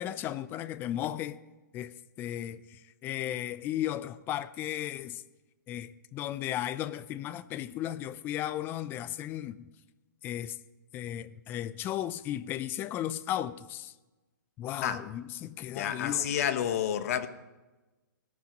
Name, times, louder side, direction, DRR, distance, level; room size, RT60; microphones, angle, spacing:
voice 1, 0.0-1.4 1.7-5.2 5.7-9.7 10.2-10.6 10.9-13.9 14.6-16.3, left 12 dB, 20° left, 0.4 m, -35 dB
voice 2, 15.7-17.3, left 10 dB, 50° left, 1.0 m, -29 dB
16.5 x 11.0 x 5.1 m
hypercardioid pair, 150°, 11 cm